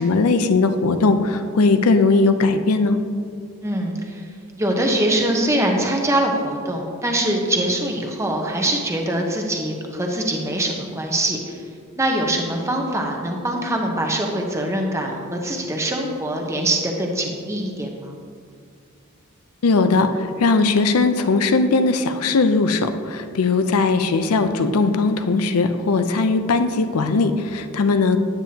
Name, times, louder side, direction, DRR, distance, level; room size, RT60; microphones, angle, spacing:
voice 1, 0.0-3.0 19.6-28.2, left 3 dB, 85° left, 9 dB, 0.5 m, -19 dB
voice 2, 3.6-4.3 4.6-11.6 12.0-18.1, right 1 dB, 15° right, 1 dB, 0.8 m, -23 dB
9.0 x 8.7 x 2.9 m, 2.3 s
head